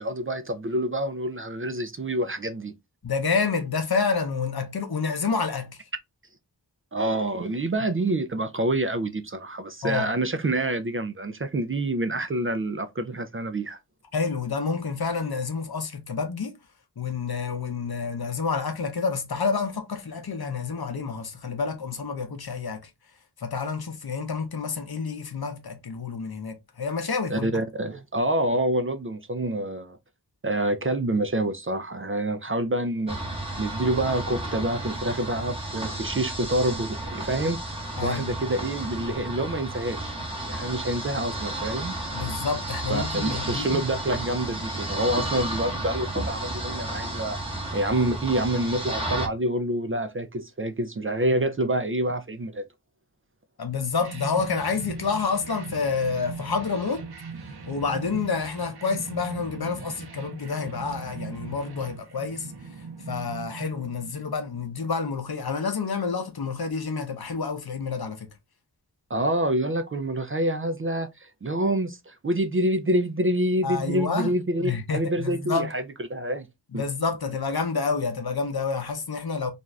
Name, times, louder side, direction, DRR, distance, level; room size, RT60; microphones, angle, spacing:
voice 1, 0.0-2.7 6.9-13.8 27.3-30.0 30.4-33.2 33.6-37.6 38.0-40.2 40.4-42.0 42.9-47.4 47.7-52.6 69.1-75.8 76.1-76.5 76.7-76.8, right 1 dB, 35° right, 0.4 m, -27 dB
voice 2, 3.0-5.8 9.8-10.1 14.1-16.6 17.0-22.9 23.4-27.5 38.0-38.4 42.1-43.8 53.6-57.1 57.7-62.5 63.1-68.3 73.6-74.3 74.6-75.7 76.7-79.5, left 5 dB, 65° left, 0.7 m, -28 dB
sound 1, 33.1-49.3, right 1 dB, 15° right, 0.9 m, -32 dB
sound 2, 54.0-64.6, right 4 dB, 70° right, 0.6 m, -40 dB
2.5 x 2.3 x 3.1 m
wide cardioid pair, 50°, 41 cm